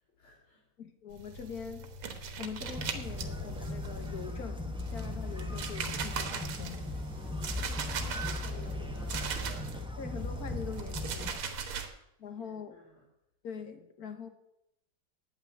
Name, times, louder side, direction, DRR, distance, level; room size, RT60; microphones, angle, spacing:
voice 1, 0.0-0.7 7.1-9.7 12.4-13.0, left 2 dB, 80° left, -5 dB, 4.3 m, -54 dB
voice 2, 0.8-1.9 2.4-6.9 10.0-11.4 12.2-12.8 13.4-14.3, left 6 dB, 50° left, 8 dB, 1.6 m, -43 dB
sound 1, 1.1-4.4 4.8-9.8 10.2-11.9, right 5 dB, 85° right, 2.1 m, -40 dB
sound 2, 2.6-11.3, left 2 dB, 5° right, 0.8 m, -38 dB
9.1 x 9.0 x 8.7 m, 0.83 s
omnidirectional pair, 2.3 m